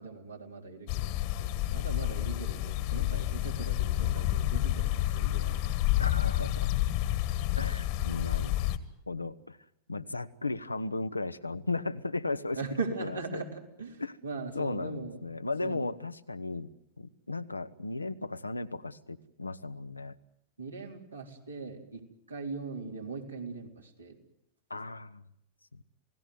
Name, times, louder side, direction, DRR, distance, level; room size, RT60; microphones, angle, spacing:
voice 1, 0.0-6.2 12.5-15.2 15.6-15.9 20.6-24.2, right 4 dB, 80° right, 1 dB, 3.9 m, -40 dB
sound 1, 0.9-8.8, left 14 dB, 45° left, 1.7 m, -29 dB
voice 2, 6.0-6.7 7.5-8.6 9.1-9.6 9.9-12.6 13.3-13.4 14.0-14.1 14.5-16.7 17.0-20.2 24.7-25.2 25.7-25.8, left 3 dB, 80° left, 12 dB, 1.0 m, -35 dB
28.5 x 18.0 x 9.5 m, 0.77 s
figure-of-eight pair, 90°, 0 cm